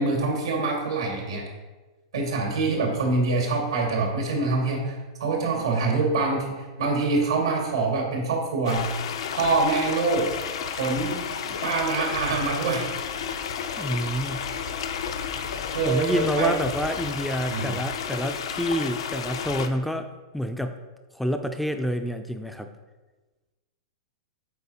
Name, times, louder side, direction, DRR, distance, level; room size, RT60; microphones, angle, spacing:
voice 1, 0.0-1.5 2.1-8.9 9.3-10.3 10.8-11.2 11.5-12.9 15.7-16.5 17.5-17.8, right 3 dB, 85° right, 0 dB, 1.9 m, -25 dB
sound 1, 8.7-19.7, left 7 dB, 75° left, 0.6 m, -32 dB
voice 2, 13.8-14.4 15.8-20.8 21.1-22.7, equal, ahead, 7 dB, 0.3 m, -28 dB
7.9 x 4.6 x 2.8 m, 1.2 s
hypercardioid pair, 125°, 3 cm